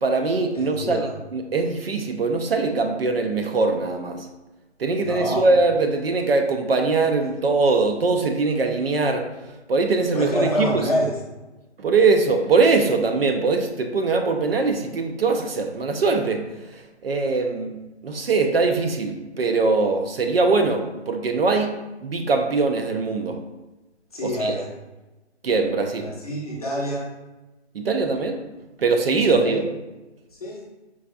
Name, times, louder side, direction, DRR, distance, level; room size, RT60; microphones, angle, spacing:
voice 1, 0.0-4.3 4.8-9.3 9.7-10.8 11.8-16.4 17.0-17.7 18.0-21.7 22.0-23.4 24.2-24.5 25.4-26.1 27.7-28.4 28.8-29.7, right 3 dB, 60° right, 5 dB, 0.4 m, -22 dB
voice 2, 0.5-1.1 5.0-5.5 10.1-11.2 24.1-24.7 26.0-27.1 29.4-29.6 30.4-30.6, equal, 35° left, -4 dB, 0.6 m, -26 dB
4.7 x 2.2 x 2.5 m, 1.1 s
hypercardioid pair, 170°, 34 cm